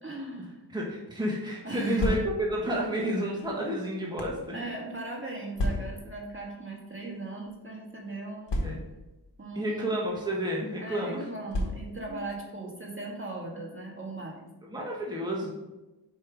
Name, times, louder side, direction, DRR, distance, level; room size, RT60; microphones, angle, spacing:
voice 1, 0.0-0.6 1.6-2.2 3.2-3.3 4.5-8.7 9.4-10.0 10.8-14.5, right 2 dB, 30° right, -2 dB, 1.6 m, -38 dB
voice 2, 0.7-4.7 8.6-8.8 9.5-11.3 12.1-12.2 14.6-15.5, equal, 10° right, -4 dB, 1.4 m, -31 dB
sound 1, 2.0-2.6 3.4-4.4 5.6-6.2 7.0-7.2 7.5-7.6 8.5-9.1 10.0-10.2 11.5-12.1, left 1 dB, 80° left, 1.2 m, -32 dB
5.4 x 4.8 x 4.9 m, 1.1 s
wide cardioid pair, 65°, 42 cm